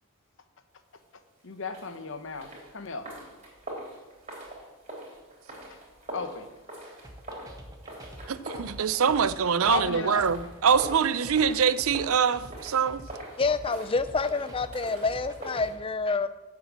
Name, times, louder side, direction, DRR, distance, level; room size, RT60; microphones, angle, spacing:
voice 1, 1.4-3.1 6.1-6.5 9.7-10.2, left 4 dB, 60° left, 9 dB, 0.9 m, -34 dB
sound 1, 1.6-15.7, right 1 dB, 30° right, 3.6 m, -43 dB
sound 2, 7.0-15.7, equal, 15° right, 1.3 m, -46 dB
voice 2, 8.3-13.0, right 7 dB, 70° right, 16 dB, 0.5 m, -24 dB
voice 3, 13.4-16.3, left 4 dB, 25° left, 13 dB, 0.5 m, -27 dB
9.6 x 7.6 x 7.4 m, 1.1 s
head